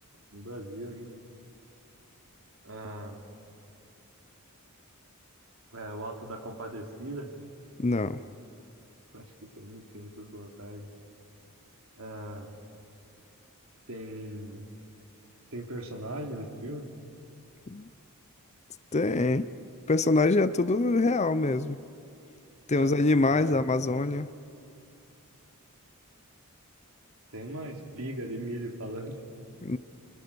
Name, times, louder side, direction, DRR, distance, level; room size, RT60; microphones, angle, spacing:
voice 1, 0.3-1.2 2.6-3.2 5.7-7.3 9.1-9.3 9.6-10.9 12.0-12.5 13.9-14.7 15.5-16.9 22.7-22.9 23.3-23.6 27.3-29.2, right 1 dB, 65° right, 2 dB, 3.1 m, -39 dB
voice 2, 7.8-8.2 17.7-17.9 18.9-19.5 19.9-21.8 22.7-24.3 29.6-29.8, left 2 dB, 30° left, 14 dB, 0.6 m, -24 dB
29.0 x 25.0 x 7.0 m, 2.5 s
head